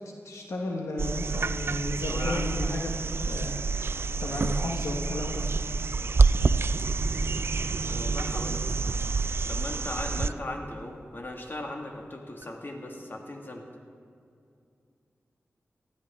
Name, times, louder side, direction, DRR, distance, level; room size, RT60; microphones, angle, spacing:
voice 1, 0.2-2.9 3.3-3.9 4.2-5.5 10.2-10.3, left 1 dB, 90° left, 1 dB, 1.2 m, -33 dB
sound 1, 1.0-10.3 12.4-12.5, right 4 dB, 55° right, 0.4 m, -27 dB
voice 2, 2.1-2.5 7.9-8.6 9.5-13.6, left 1 dB, 45° left, 1 dB, 1.9 m, -38 dB
18.5 x 13.0 x 3.6 m, 2.4 s
cardioid pair, 45°, 5 cm